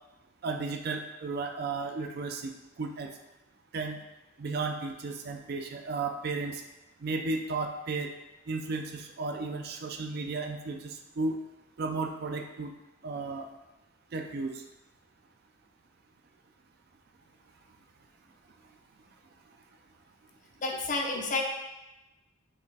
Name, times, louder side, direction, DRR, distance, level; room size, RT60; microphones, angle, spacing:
voice 1, 0.4-2.5 2.8-3.1 3.7-4.0 4.4-6.6 7.0-8.1 8.5-11.4 11.8-12.7 13.0-13.5 14.1-14.6, right 3 dB, 50° right, 4 dB, 0.4 m, -34 dB
voice 2, 20.6-21.4, left 3 dB, 40° left, 1 dB, 0.6 m, -30 dB
4.8 x 3.1 x 3.3 m, 1.0 s
head